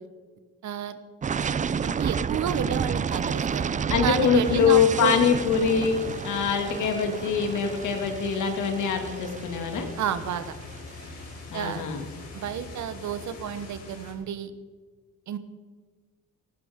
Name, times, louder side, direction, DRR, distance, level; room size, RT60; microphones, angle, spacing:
voice 1, 0.6-1.0 1.8-5.2 10.0-10.5 11.5-11.9 12.3-14.5 15.3-15.4, right 8 dB, 70° right, 11 dB, 1.1 m, -30 dB
sound 1, 1.2-11.0, right 6 dB, 25° right, 0.4 m, -30 dB
voice 2, 3.9-9.9 11.5-12.0, left 7 dB, 80° left, 4 dB, 2.4 m, -24 dB
sound 2, 4.4-14.1, left 3 dB, 55° left, 4.0 m, -42 dB
17.5 x 15.5 x 3.7 m, 1.4 s
cardioid pair, 90°, 30 cm